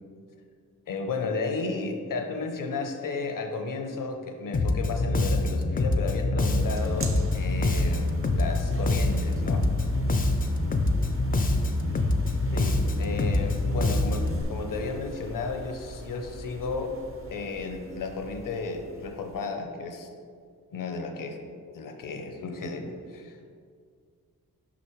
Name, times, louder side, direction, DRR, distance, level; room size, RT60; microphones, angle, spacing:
voice 1, 0.9-9.7 12.5-17.0 17.3-20.1 20.7-21.4 21.7-23.6, left 4 dB, 65° left, 5 dB, 0.7 m, -33 dB
Bass guitar, 4.5-14.4, left 2 dB, 25° left, 0.4 m, -25 dB
sound 1, 6.5-19.5, right 2 dB, 40° right, 0.6 m, -40 dB
6.1 x 5.5 x 3.1 m, 2.1 s
cardioid pair, 80°, 34 cm